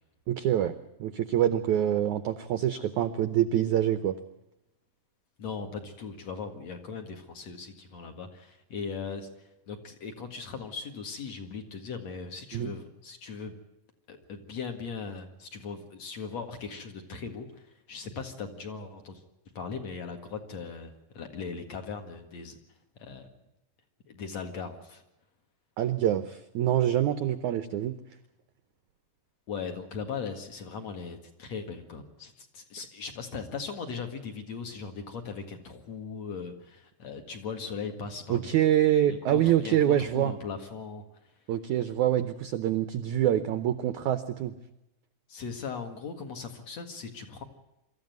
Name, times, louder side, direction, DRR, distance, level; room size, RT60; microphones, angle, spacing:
voice 1, 0.3-0.7 1.0-4.2 12.5-12.7 25.8-28.0 38.3-40.3 41.5-44.5, right 11 dB, 85° right, 12 dB, 1.7 m, -26 dB
voice 2, 5.4-13.6 14.1-19.2 19.5-22.6 23.0-23.3 24.1-25.0 29.5-38.5 39.1-41.0 45.3-47.4, left 5 dB, 50° left, 5 dB, 2.6 m, -39 dB
24.5 x 14.5 x 9.3 m, 0.91 s
omnidirectional pair, 4.6 m